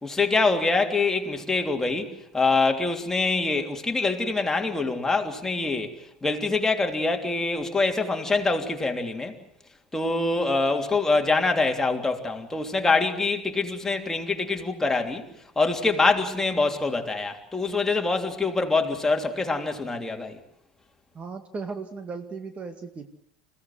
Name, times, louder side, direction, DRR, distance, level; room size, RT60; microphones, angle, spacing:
voice 1, 0.0-5.9 6.2-9.3 9.9-15.2 15.6-20.4, left 3 dB, 10° left, 3.2 m, -25 dB
voice 2, 21.1-23.1, right 4 dB, 25° right, 2.1 m, -36 dB
28.5 x 16.5 x 7.9 m
figure-of-eight pair, 75°, 5 cm